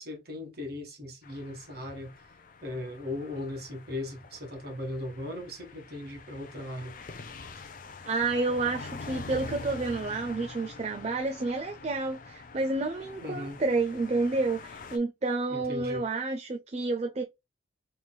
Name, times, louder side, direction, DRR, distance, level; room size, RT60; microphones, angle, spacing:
voice 1, 0.0-2.1 2.6-7.0 13.2-13.6 15.5-16.0, left 1 dB, 50° right, 1.5 m, -38 dB
sound 1, 1.2-15.0, left 3 dB, 45° left, 0.5 m, -45 dB
voice 2, 8.0-17.2, right 3 dB, 35° right, 0.4 m, -30 dB
4.3 x 3.3 x 2.2 m
head